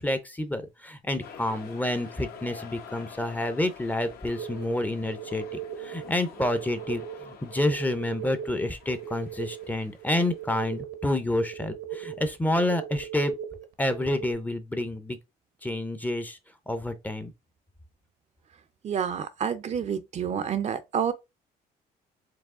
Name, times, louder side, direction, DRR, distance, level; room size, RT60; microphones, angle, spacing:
voice 1, 0.0-5.4 5.8-13.3 13.8-15.2 15.6-16.4 16.7-17.3, left 1 dB, 10° left, 0.6 m, -29 dB
sound 1, 1.2-10.8, left 7 dB, 65° left, 1.0 m, -47 dB
sound 2, 4.3-14.3, right 10 dB, 65° right, 0.8 m, -39 dB
voice 2, 18.8-21.1, right 8 dB, 40° right, 0.5 m, -29 dB
4.7 x 2.2 x 3.6 m
cardioid pair, 110°, 17 cm